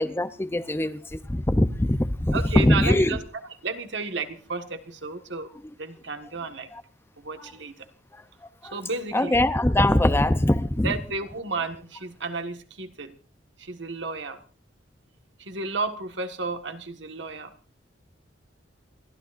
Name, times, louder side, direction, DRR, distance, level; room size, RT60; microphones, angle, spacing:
voice 1, 0.0-3.2 6.7-6.8 8.6-8.8 9.1-10.9, left 1 dB, 15° left, 0.6 m, -22 dB
voice 2, 2.3-3.2 3.6-5.5 5.8-6.7 7.2-7.7 8.7-9.4 10.8-13.1 13.6-14.4 15.4-17.5, right 3 dB, 70° right, 1.6 m, -32 dB
28.5 x 13.5 x 2.6 m
head